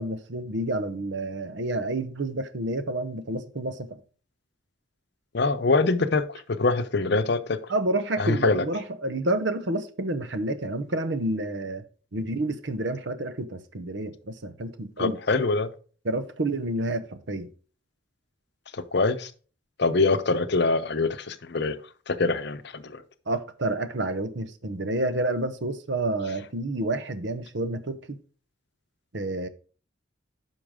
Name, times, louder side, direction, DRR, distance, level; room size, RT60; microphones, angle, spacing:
voice 1, 0.0-3.9 7.7-11.8 12.1-15.2 16.0-17.5 23.3-28.2 29.1-29.5, right 2 dB, 60° right, 0.9 m, -29 dB
voice 2, 5.3-7.6 8.2-8.6 15.0-15.7 18.7-19.3 19.8-21.8 22.1-23.0, left 3 dB, 55° left, 0.7 m, -24 dB
9.9 x 5.8 x 3.6 m
head